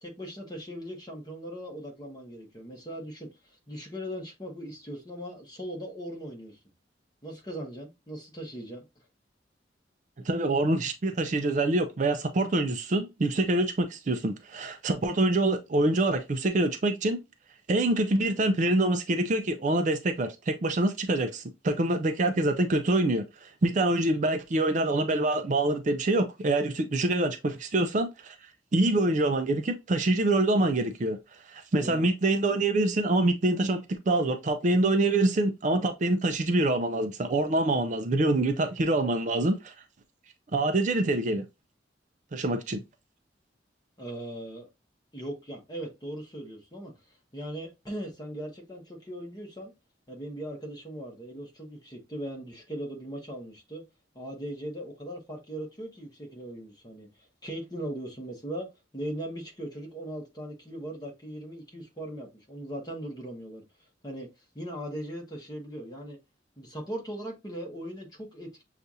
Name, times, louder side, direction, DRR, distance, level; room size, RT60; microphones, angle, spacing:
voice 1, 0.0-6.6 7.2-8.8 31.8-32.1 44.0-44.7 45.1-49.7 50.1-53.8 54.1-57.1 57.4-63.6 64.0-64.3 64.5-66.2 66.6-68.6, right 1 dB, 20° left, 1.2 m, -39 dB
voice 2, 10.2-17.2 17.7-28.4 28.7-31.2 31.5-39.7 40.5-41.4 42.3-42.8, right 2 dB, 40° right, 0.4 m, -25 dB
6.7 x 2.4 x 2.7 m
head